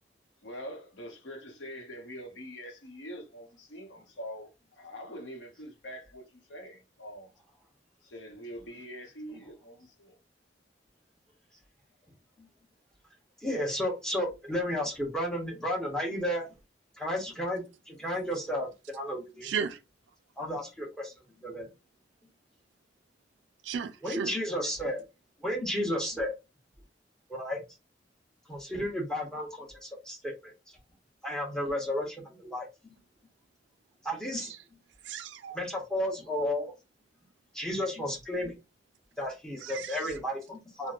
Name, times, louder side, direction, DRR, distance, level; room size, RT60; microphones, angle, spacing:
voice 1, 0.4-7.3 8.0-10.2, equal, 80° left, 0.8 m, -44 dB
voice 2, 13.4-16.5 17.0-19.5 20.4-21.1 21.4-21.7 24.0-25.0 25.4-26.3 27.3-27.6 28.5-30.5 31.2-32.7 34.0-34.5 35.5-36.7 37.5-38.6 39.2-40.9, left 1 dB, 5° left, 0.8 m, -33 dB
voice 3, 19.4-19.8 23.6-24.4 34.4-34.6 35.0-35.6 39.6-40.2, right 7 dB, 75° right, 0.3 m, -35 dB
2.9 x 2.1 x 2.4 m
head